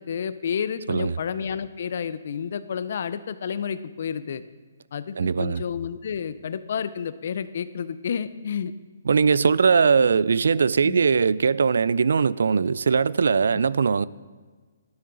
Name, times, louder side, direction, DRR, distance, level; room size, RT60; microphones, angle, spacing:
voice 1, 0.0-4.4 4.9-8.7 10.8-11.0, left 7 dB, 45° left, 0.5 m, -30 dB
voice 2, 5.2-5.6 9.1-14.1, right 5 dB, 70° right, 0.3 m, -20 dB
12.5 x 9.5 x 3.9 m
hypercardioid pair, 175°, 0 cm